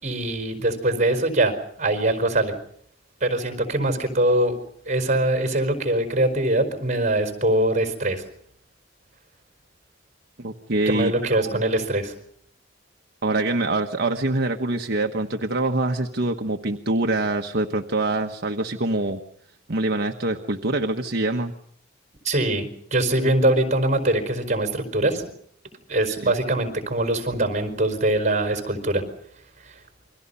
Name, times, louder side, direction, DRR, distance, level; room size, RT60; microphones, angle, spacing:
voice 1, 0.0-1.5 1.8-2.5 3.2-4.5 4.9-8.2 10.9-12.1 22.2-25.3 25.9-29.0 29.7-29.8, right 1 dB, 35° right, 7 dB, 4.6 m, -22 dB
voice 2, 10.4-11.6 13.2-19.2 19.7-21.5 26.1-26.3, right 2 dB, 55° right, 5 dB, 1.2 m, -25 dB
28.5 x 23.5 x 5.6 m, 0.66 s
head